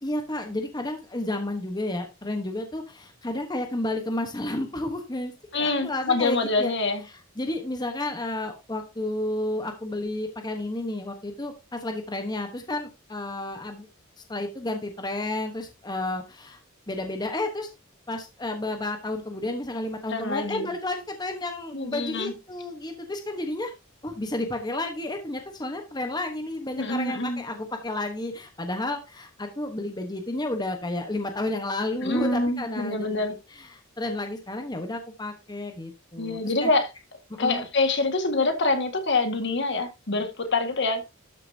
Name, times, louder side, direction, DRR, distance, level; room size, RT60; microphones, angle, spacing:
voice 1, 0.0-6.7 7.1-13.9 14.3-16.6 16.9-17.7 18.1-23.7 24.0-36.7 37.3-37.7, left 2 dB, 20° left, 1.1 m, -31 dB
voice 2, 5.5-7.0 20.1-20.7 21.7-22.3 26.8-27.4 32.0-33.4 36.2-36.9 37.4-41.0, left 3 dB, 55° left, 1.8 m, -25 dB
12.5 x 6.8 x 2.8 m
head